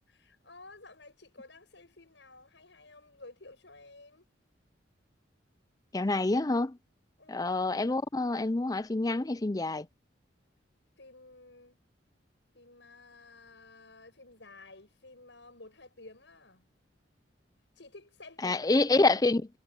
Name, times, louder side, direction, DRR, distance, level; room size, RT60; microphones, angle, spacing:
voice 1, 0.1-4.3 7.2-7.5 11.0-11.8 12.5-16.7 17.7-18.9, left 2 dB, 80° left, 6.8 m, -53 dB
voice 2, 5.9-6.8 7.3-9.9 18.4-19.6, left 2 dB, 20° left, 0.5 m, -27 dB
head